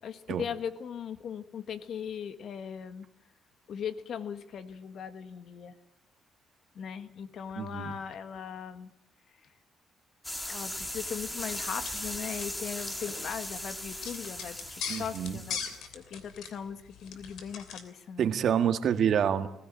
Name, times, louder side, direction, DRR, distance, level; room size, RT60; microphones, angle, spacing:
voice 1, 0.0-3.1 3.7-5.7 6.7-8.9 10.5-18.3, left 7 dB, 65° left, 11 dB, 1.6 m, -39 dB
voice 2, 7.6-8.0 14.9-15.4 18.2-19.5, right 8 dB, 65° right, 9 dB, 1.7 m, -27 dB
sound 1, 10.2-15.8, left 1 dB, 10° left, 2.2 m, -38 dB
sound 2, 10.8-17.9, left 7 dB, 85° left, 2.9 m, -42 dB
20.5 x 16.0 x 9.0 m, 0.84 s
cardioid pair, 90°, 0 cm